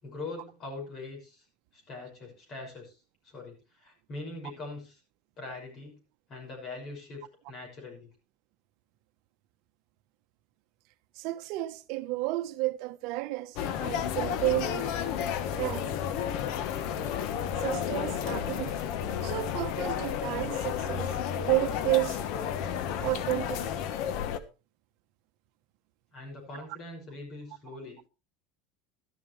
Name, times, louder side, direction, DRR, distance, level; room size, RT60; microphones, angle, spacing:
voice 1, 0.0-1.5 1.7-3.0 3.2-5.0 5.4-6.0 6.3-8.1 26.1-28.0, left 2 dB, 40° left, 6.2 m, -42 dB
voice 2, 11.1-15.0 15.6-15.9 17.6-18.8 19.2-22.2 23.0-23.6 26.5-26.7, right 19 dB, 60° right, 1.0 m, -31 dB
sound 1, 13.6-24.4, left 9 dB, 60° left, 1.2 m, -32 dB
13.0 x 13.0 x 3.3 m
supercardioid pair, 140°, 0 cm